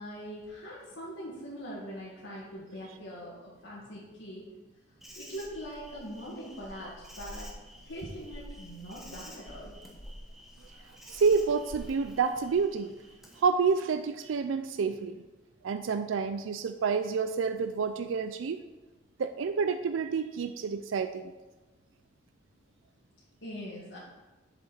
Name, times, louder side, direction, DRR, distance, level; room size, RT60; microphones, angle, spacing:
voice 1, 0.0-4.5 5.2-7.5 7.8-9.8 23.4-24.0, equal, 80° left, -8 dB, 2.0 m, -42 dB
Insect, 5.0-13.4, equal, ahead, 1.0 m, -48 dB
voice 2, 11.1-12.9 13.4-15.2 15.6-18.6 19.2-21.3, right 5 dB, 85° right, 10 dB, 0.4 m, -28 dB
7.4 x 6.8 x 4.3 m, 1.2 s
head